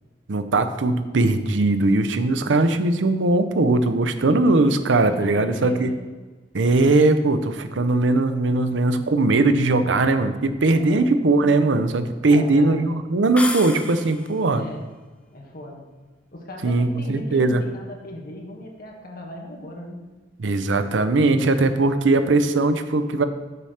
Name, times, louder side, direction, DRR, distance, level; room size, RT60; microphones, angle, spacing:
voice 1, 0.3-5.9 6.5-14.6 16.6-17.6 20.4-23.2, right 2 dB, 85° right, 10 dB, 0.6 m, -20 dB
voice 2, 5.0-6.0 10.7-11.1 12.2-12.9 14.5-14.9 15.3-15.8 16.3-20.0, left 1 dB, 55° left, 0 dB, 1.4 m, -37 dB
sound 1, 13.4-14.4, left 2 dB, 5° left, 0.6 m, -31 dB
6.7 x 4.3 x 6.4 m, 1.3 s
head